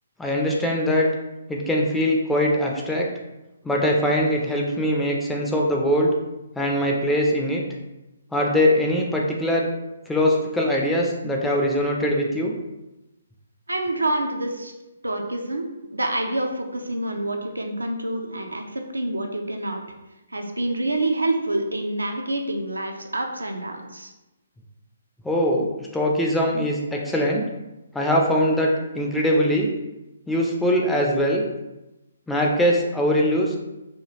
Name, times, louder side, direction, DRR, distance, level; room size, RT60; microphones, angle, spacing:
voice 1, 0.2-1.1 1.5-3.1 3.6-6.1 6.6-7.6 8.3-9.7 10.1-12.5 25.2-27.4 27.9-29.7 30.3-31.4 32.3-33.6, equal, 5° left, -2 dB, 0.4 m, -22 dB
voice 2, 13.7-14.7 15.0-15.7 15.9-19.8 20.3-24.1, right 1 dB, 80° right, 3 dB, 0.4 m, -27 dB
3.3 x 2.3 x 2.8 m, 0.98 s
figure-of-eight pair, 135°, 0 cm